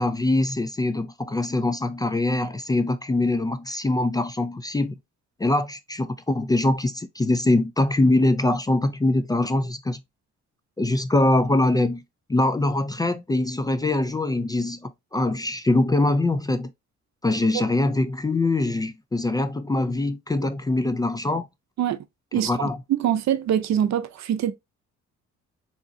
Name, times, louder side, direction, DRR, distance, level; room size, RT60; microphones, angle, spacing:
voice 1, 0.0-5.0 5.4-10.0 10.8-12.0 12.3-16.7 17.2-21.5 22.4-22.8, left 2 dB, 15° left, 0.3 m, -23 dB
voice 2, 22.3-24.5, right 10 dB, 65° right, 0.6 m, -24 dB
3.7 x 2.9 x 2.6 m
cardioid pair, 90°, 30 cm